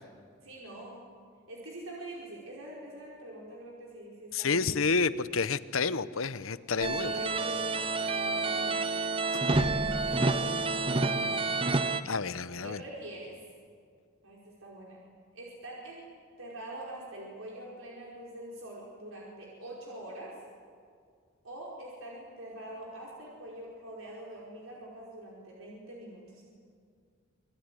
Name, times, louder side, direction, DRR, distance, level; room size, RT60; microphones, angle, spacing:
voice 1, 0.4-1.0 1.5-4.9 6.9-7.9 8.3-8.9 9.5-11.3 12.6-13.4 14.2-15.0 15.3-16.1 16.4-20.4 21.4-26.4, right 1 dB, 75° right, -4 dB, 5.1 m, -44 dB
voice 2, 4.3-7.1 9.6-9.7 12.0-12.8, left 4 dB, 75° left, 15 dB, 0.9 m, -29 dB
sound 1, 6.8-12.0, right 3 dB, 25° right, 0.8 m, -29 dB
27.0 x 22.0 x 10.0 m, 2.1 s
head